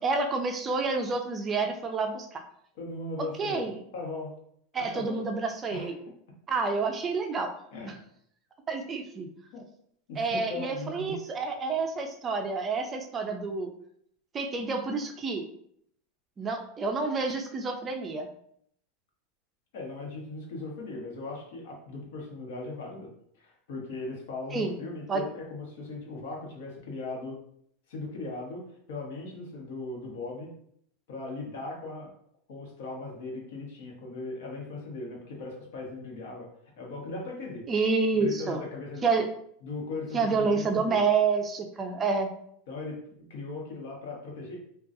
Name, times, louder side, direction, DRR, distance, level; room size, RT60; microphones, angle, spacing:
voice 1, 0.0-2.4 3.4-3.8 4.7-5.9 6.5-7.5 7.8-8.0 8.7-9.3 10.2-13.7 14.3-15.4 16.4-18.3 24.5-24.8 25.1-25.2 37.7-38.6 39.0-39.3 40.1-42.3, right 4 dB, 20° right, 4 dB, 0.4 m, -28 dB
voice 2, 2.7-3.7 3.9-4.3 4.8-5.2 5.7-5.9 7.7-8.0 9.5-9.6 10.1-11.1 19.7-23.1 23.3-27.4 27.9-28.6 28.9-30.5 31.1-32.1 32.5-36.5 36.8-37.7 38.2-39.0 39.6-41.1 42.7-44.6, left 3 dB, 75° left, -1 dB, 1.0 m, -38 dB
3.8 x 2.3 x 2.6 m, 0.68 s
supercardioid pair, 140°, 0 cm